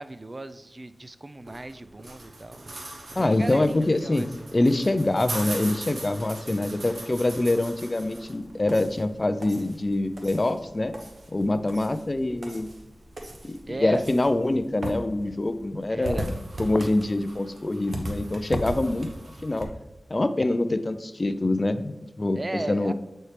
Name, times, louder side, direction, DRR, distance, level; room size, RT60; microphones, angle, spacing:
voice 1, 0.0-2.7 3.2-4.6 13.7-14.1 15.9-16.3 22.3-22.9, right 2 dB, 35° right, 12 dB, 0.4 m, -36 dB
sound 1, 1.4-19.7, right 1 dB, 65° right, 1.0 m, -39 dB
voice 2, 3.2-4.3 4.5-10.9 11.3-12.7 13.4-16.3 16.6-19.7 20.1-22.9, left 2 dB, 35° left, 10 dB, 0.5 m, -25 dB
8.1 x 4.3 x 3.3 m, 0.98 s
wide cardioid pair, 60°, 0 cm